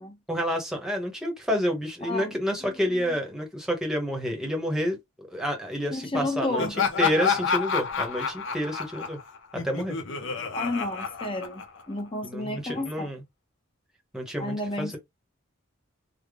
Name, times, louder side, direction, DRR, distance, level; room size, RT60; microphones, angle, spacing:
voice 1, 0.3-9.2 9.5-10.0 12.2-13.2 14.1-15.0, equal, 5° right, 0.9 m, -29 dB
voice 2, 2.0-2.4 2.6-2.7 5.9-6.7 10.5-13.1 14.4-15.0, left 1 dB, 25° left, 0.7 m, -31 dB
Laughter, 6.6-12.0, left 6 dB, 60° left, 0.7 m, -29 dB
3.4 x 2.1 x 3.6 m
head